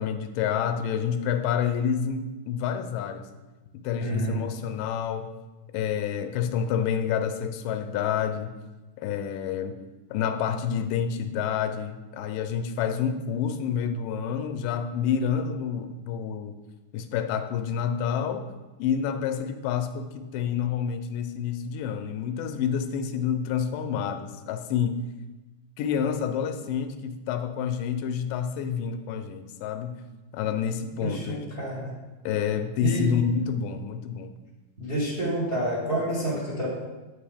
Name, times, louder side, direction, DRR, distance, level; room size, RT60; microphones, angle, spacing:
voice 1, 0.0-3.3 3.8-5.3 5.7-8.5 9.0-9.8 10.1-16.6 16.9-18.5 18.8-25.0 25.8-30.0 30.3-31.5 32.3-34.3, left 7 dB, 85° left, 8 dB, 2.2 m, -28 dB
voice 2, 4.0-4.4 31.0-31.9 32.8-33.1 34.8-36.7, right 1 dB, 30° right, -6 dB, 1.0 m, -29 dB
8.7 x 5.4 x 3.4 m, 1.2 s
omnidirectional pair, 3.8 m